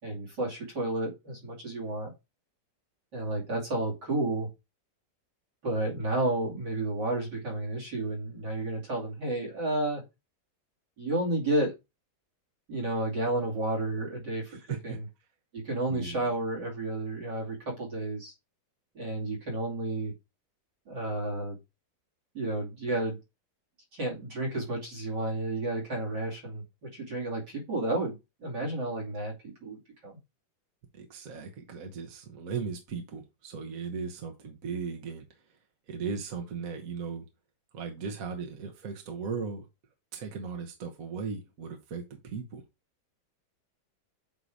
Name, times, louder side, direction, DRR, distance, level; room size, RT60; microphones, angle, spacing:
voice 1, 0.0-2.1 3.1-4.5 5.6-10.0 11.0-11.7 12.7-15.0 15.5-18.3 18.9-20.1 20.9-21.6 22.3-23.2 23.9-30.2, right 2 dB, 75° right, 3.2 m, -31 dB
voice 2, 14.5-15.0 15.9-16.3 30.9-35.6 35.9-37.2 37.7-39.7 40.1-42.6, right 5 dB, 55° right, 1.4 m, -37 dB
8.1 x 2.8 x 4.8 m
omnidirectional pair, 1.9 m